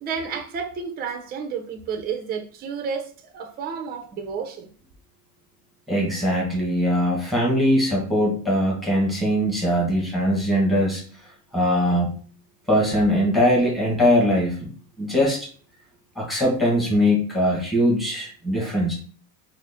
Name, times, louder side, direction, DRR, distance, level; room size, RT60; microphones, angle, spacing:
voice 1, 0.0-4.7, right 6 dB, 20° right, 0.4 m, -31 dB
voice 2, 5.9-11.0 11.5-12.2 12.7-14.6 15.0-15.5 16.2-18.9, equal, ahead, 1.1 m, -21 dB
4.0 x 2.0 x 3.4 m
cardioid pair, 140°, 45 cm